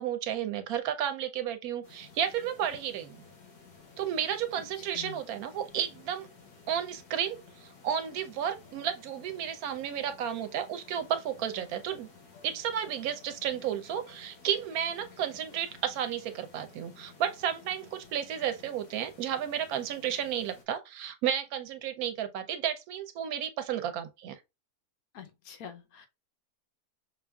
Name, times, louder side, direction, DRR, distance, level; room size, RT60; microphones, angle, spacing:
voice 1, 0.0-3.2 4.0-6.3 6.7-12.1 12.4-24.3, right 9 dB, 75° right, 1.0 m, -32 dB
sound 1, 1.8-20.6, left 4 dB, 85° left, 1.5 m, -54 dB
voice 2, 4.8-5.2 25.1-26.1, left 8 dB, 70° left, 1.1 m, -46 dB
5.3 x 2.4 x 2.2 m
omnidirectional pair, 1.6 m